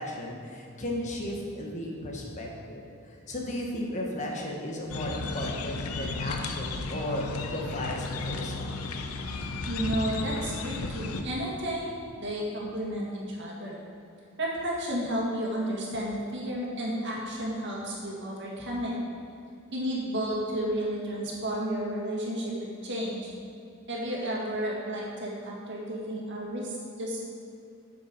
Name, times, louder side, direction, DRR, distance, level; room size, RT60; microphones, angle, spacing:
voice 1, 0.0-2.8 3.3-8.7, left 1 dB, 35° left, -1 dB, 1.2 m, -35 dB
sound 1, 4.9-11.2, left 3 dB, 80° left, 0.7 m, -34 dB
voice 2, 9.7-13.8 14.4-18.9 19.7-23.3 23.9-27.2, right 1 dB, 55° right, -3 dB, 2.0 m, -32 dB
8.5 x 7.0 x 5.2 m, 2.5 s
head